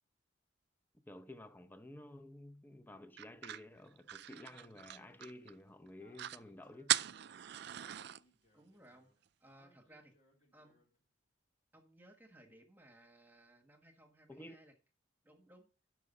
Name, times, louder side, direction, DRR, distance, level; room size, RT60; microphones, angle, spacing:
voice 1, 0.9-7.0 14.3-14.7, left 1 dB, 10° left, 0.7 m, -53 dB
sound 1, 3.2-5.5 5.9-6.0 6.1-6.4 6.9-8.2, right 13 dB, 60° right, 0.4 m, -39 dB
Speech, 4.3-11.0, left 1 dB, 40° left, 3.0 m, -71 dB
voice 2, 8.5-9.1 9.4-10.1 10.5-10.8 11.7-14.7 15.2-15.7, right 1 dB, 10° right, 1.4 m, -61 dB
11.5 x 4.8 x 5.4 m
head